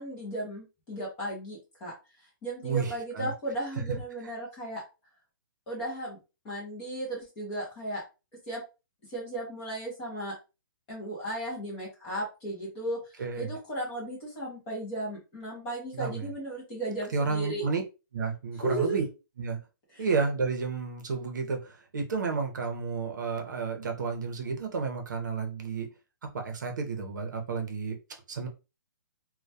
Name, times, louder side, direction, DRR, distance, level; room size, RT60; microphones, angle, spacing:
voice 1, 0.0-1.9 2.4-4.8 5.7-6.2 6.4-8.0 8.5-8.6 9.1-10.3 10.9-17.6 18.6-19.0 19.9-20.0, right 1 dB, 10° left, 0.5 m, -35 dB
voice 2, 2.6-3.3 13.2-13.5 15.9-16.3 17.1-17.8 18.1-19.0 19.4-19.6 20.0-25.9 26.3-28.0 28.3-28.5, right 4 dB, 55° right, 0.7 m, -31 dB
2.2 x 2.1 x 2.6 m
hypercardioid pair, 180°, 11 cm